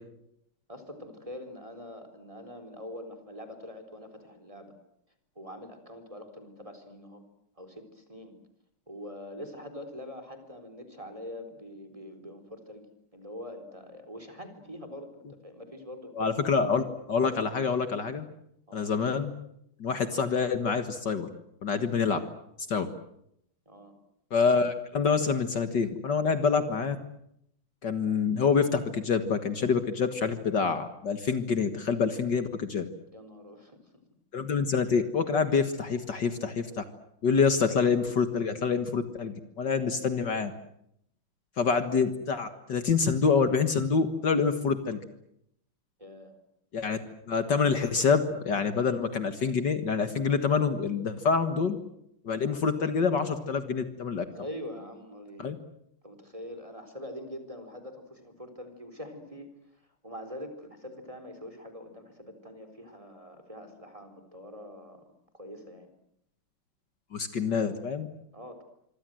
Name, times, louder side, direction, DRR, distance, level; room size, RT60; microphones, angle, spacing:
voice 1, 0.7-4.8 5.4-7.2 7.6-8.4 8.9-16.2 18.7-18.9 23.7-24.0 33.1-33.8 37.7-37.8 46.0-46.3 54.3-55.5 56.0-59.5 60.0-65.1 65.3-65.9 68.3-68.6, left 1 dB, 15° right, 7 dB, 4.1 m, -44 dB
voice 2, 16.2-18.3 18.7-19.3 19.8-21.3 21.6-22.2 22.7-22.9 24.3-27.0 27.8-32.9 34.3-36.8 37.2-40.5 41.6-45.0 46.7-47.0 47.3-51.8 52.2-54.3 55.4-55.6 67.1-68.1, left 5 dB, 55° left, 9 dB, 2.2 m, -26 dB
26.0 x 25.0 x 7.8 m, 0.76 s
omnidirectional pair, 2.3 m